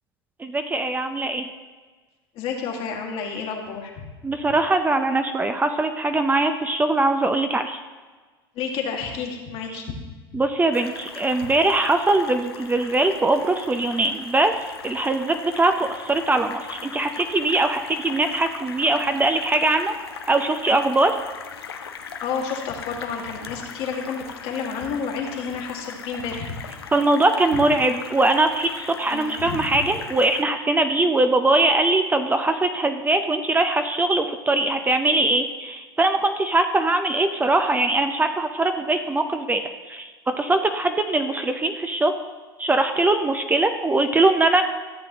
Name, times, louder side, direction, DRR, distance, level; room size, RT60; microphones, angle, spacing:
voice 1, 0.4-1.5 4.2-7.8 9.7-9.8 10.3-19.9 20.3-21.2 26.9-39.6 39.9-42.1 42.6-44.6, right 2 dB, 15° right, 7 dB, 0.5 m, -21 dB
voice 2, 2.4-4.1 8.6-10.0 22.2-26.7 29.1-29.6, left 5 dB, 50° left, 1 dB, 1.8 m, -30 dB
sound 1, 10.7-30.4, left 6 dB, 85° left, 0.7 m, -39 dB
14.0 x 7.7 x 2.9 m, 1.4 s
hypercardioid pair, 85°, 12 cm